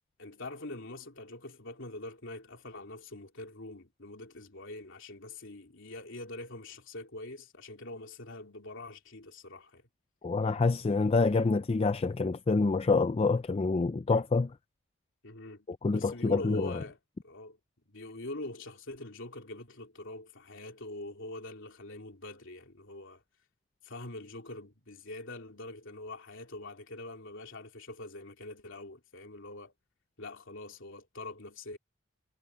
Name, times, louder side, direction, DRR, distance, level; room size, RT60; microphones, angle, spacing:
voice 1, 0.2-9.8 15.2-17.0 17.2-17.6 17.9-23.2 23.8-29.7 30.2-31.8, left 2 dB, 60° left, 3.4 m, -44 dB
voice 2, 10.2-14.5 15.8-16.7, left 3 dB, 25° left, 0.4 m, -27 dB
head